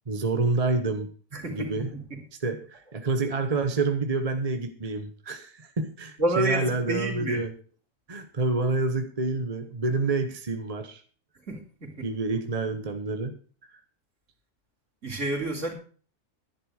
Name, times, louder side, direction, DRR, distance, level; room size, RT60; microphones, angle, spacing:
voice 1, 0.1-1.9 2.4-7.5 8.1-11.0 12.0-13.7, right 3 dB, 25° right, 1.0 m, -28 dB
voice 2, 1.3-2.2 6.2-7.4 11.5-12.1 15.0-15.7, right 2 dB, 50° right, 3.6 m, -30 dB
11.0 x 10.5 x 4.8 m
omnidirectional pair, 1.6 m